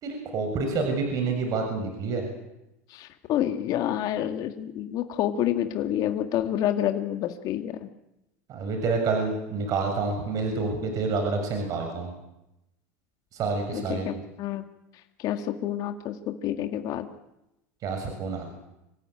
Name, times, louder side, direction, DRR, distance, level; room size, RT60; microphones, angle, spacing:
voice 1, 0.0-2.2 8.5-12.1 13.3-14.2 17.8-18.5, right 4 dB, 45° right, 4 dB, 6.8 m, -28 dB
voice 2, 2.9-7.9 13.7-14.6 15.2-17.1, left 11 dB, 55° left, 7 dB, 2.0 m, -28 dB
26.0 x 16.0 x 9.0 m, 0.90 s
supercardioid pair, 100°, 8 cm